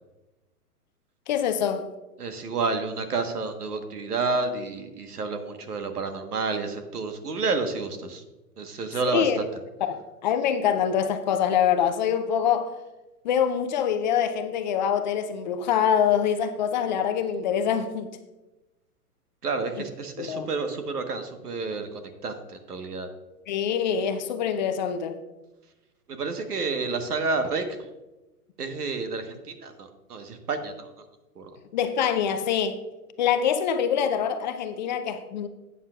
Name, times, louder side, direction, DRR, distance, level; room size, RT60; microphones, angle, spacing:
voice 1, 1.3-1.9 9.0-9.5 9.8-12.7 13.2-18.1 19.7-19.9 20.2-20.5 23.5-25.2 31.7-32.8 33.2-35.5, left 8 dB, 30° left, 0.5 m, -25 dB
voice 2, 2.2-8.2 8.6-9.3 19.4-21.9 22.2-22.3 22.7-23.1 26.2-27.6 28.6-29.2 29.6-30.7 31.4-31.5, right 4 dB, 80° right, 1.4 m, -29 dB
13.0 x 8.6 x 2.4 m
figure-of-eight pair, 120°, 46 cm